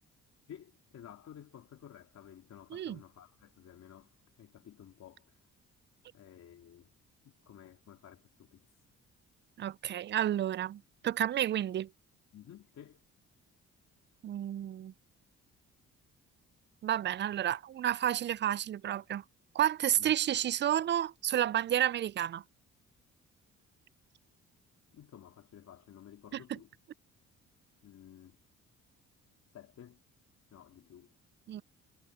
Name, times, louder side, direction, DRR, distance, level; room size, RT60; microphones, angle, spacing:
voice 1, 0.5-5.5 6.1-6.9 7.2-8.9 12.3-13.0 20.0-20.2 24.9-26.7 27.8-28.4 29.5-30.0 30.5-31.1, left 10 dB, 65° left, 2.8 m, -53 dB
voice 2, 9.6-11.9 14.2-14.9 16.8-19.2 19.5-22.4 31.5-31.6, right 11 dB, 40° right, 0.4 m, -31 dB
cardioid pair, 90°, 30 cm